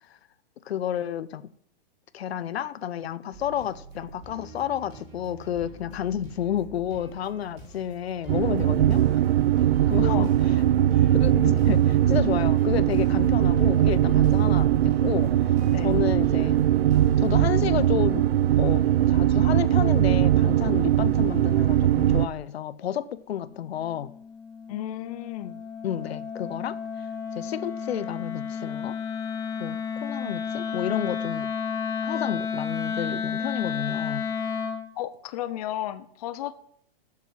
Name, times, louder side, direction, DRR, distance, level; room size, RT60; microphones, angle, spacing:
voice 1, 0.6-1.5 2.1-9.0 9.9-10.3 11.2-15.3 15.8-16.6 17.2-18.2 18.6-24.1 25.8-27.1 27.3-29.0 29.6-31.5 32.0-34.2, left 10 dB, 90° left, 0.7 m, -31 dB
sound 1, 3.3-17.4, right 2 dB, 20° right, 5.3 m, -46 dB
sound 2, 8.3-22.3, right 12 dB, 80° right, 0.6 m, -21 dB
voice 2, 10.0-10.3 15.7-15.9 24.7-25.6 35.0-36.7, left 13 dB, 40° left, 0.7 m, -33 dB
Wind instrument woodwind instrument, 23.4-34.9, left 6 dB, 10° left, 1.0 m, -32 dB
8.3 x 7.0 x 7.5 m
hypercardioid pair, 155°, 31 cm